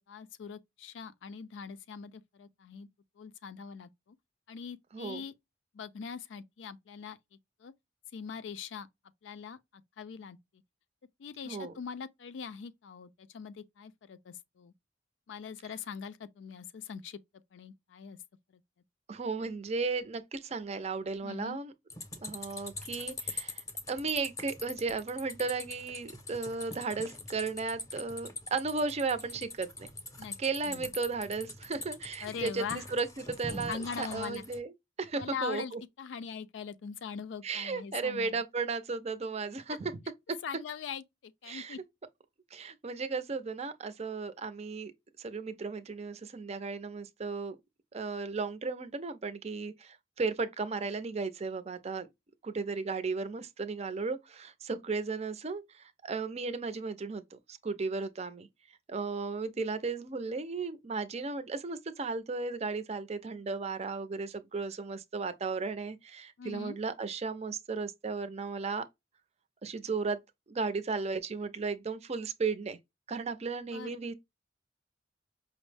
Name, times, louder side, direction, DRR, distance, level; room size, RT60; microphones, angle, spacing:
voice 1, 0.0-2.9 3.2-4.2 4.5-5.3 5.7-7.2 7.6-7.7 8.1-8.9 9.2-10.4 11.2-14.7 15.3-17.2 17.5-18.2 18.5-18.6 21.2-21.6 30.2-30.3 30.6-30.9 32.2-32.8 33.7-34.4 35.1-38.4 39.7-39.8 40.4-41.8 66.4-66.8 73.7-74.0, left 6 dB, 80° left, 0.4 m, -42 dB
voice 2, 19.1-21.7 22.2-29.9 30.4-32.6 32.9-34.7 35.0-35.8 37.4-39.9 41.5-41.8 42.5-44.9 45.2-47.6 47.9-52.1 52.4-58.5 58.9-68.8 69.6-70.2 70.5-72.8 73.1-74.1, right 4 dB, 35° right, 0.5 m, -35 dB
sound 1, 21.9-34.6, left 2 dB, 20° left, 0.7 m, -43 dB
5.1 x 2.0 x 3.2 m
head